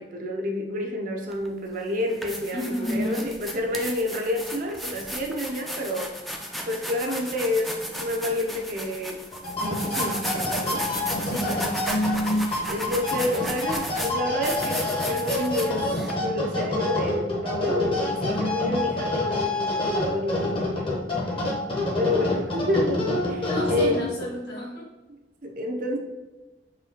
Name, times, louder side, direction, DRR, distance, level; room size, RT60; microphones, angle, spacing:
voice 1, 0.0-6.1 6.7-9.2 9.6-10.9 12.7-15.9 16.2-20.9 22.0-24.1 25.4-26.0, left 1 dB, 50° right, 1 dB, 0.6 m, -29 dB
sound 1, 1.3-1.5 2.0-16.1, equal, ahead, 0.4 m, -34 dB
voice 2, 2.5-3.3 11.3-11.8 23.5-24.9, left 1 dB, 65° left, -2 dB, 1.3 m, -32 dB
sound 2, 9.3-24.3, left 1 dB, 30° left, 0.8 m, -27 dB
4.1 x 3.2 x 2.9 m, 1.1 s
head